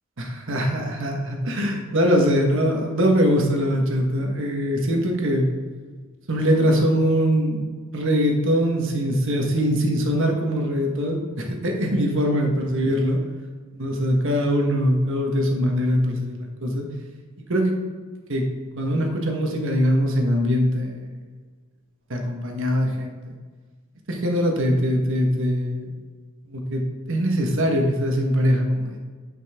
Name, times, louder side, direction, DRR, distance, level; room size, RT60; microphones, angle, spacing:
voice 1, 0.2-5.4 6.3-7.7 7.9-13.2 13.7-16.9 17.5-17.7 18.3-18.4 18.7-21.1 22.1-23.3 24.1-26.0 26.5-29.0, equal, 60° right, 2 dB, 1.4 m, -22 dB
9.4 x 5.4 x 3.6 m, 1.5 s
head